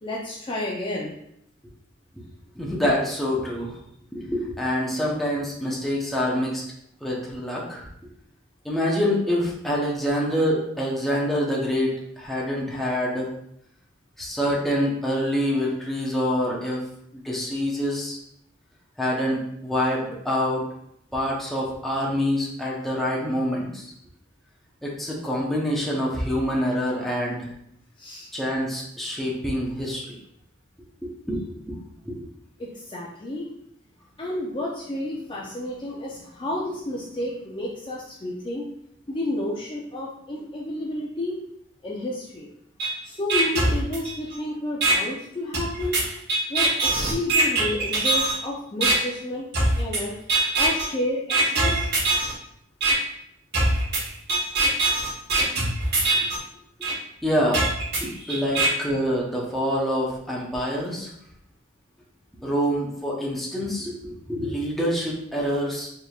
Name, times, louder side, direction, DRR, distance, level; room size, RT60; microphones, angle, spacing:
voice 1, 0.0-1.1 28.0-28.3 32.6-33.5 34.2-38.7 39.1-41.4 41.8-42.5 43.0-46.0 46.5-49.5 49.7-50.1 50.5-51.9 58.1-58.6, left 1 dB, 25° left, -4 dB, 0.5 m, -31 dB
voice 2, 2.6-3.8 4.1-6.6 7.0-7.9 8.6-13.3 14.2-16.8 17.1-18.2 19.0-20.6 21.1-23.8 24.8-27.5 28.3-30.2 31.0-31.8 32.0-32.3 57.2-57.7 58.0-61.1 62.4-65.9, equal, ahead, -5 dB, 0.8 m, -26 dB
sound 1, 42.8-42.9 43.3-44.3 44.8-44.9 45.5-48.4 48.8-48.9 49.5-50.0 50.3-50.9 51.3-52.3 52.8-52.9 53.5-56.4 56.8-56.9 57.5-58.7, right 2 dB, 60° right, 1.4 m, -22 dB
4.6 x 3.4 x 2.4 m, 0.75 s
head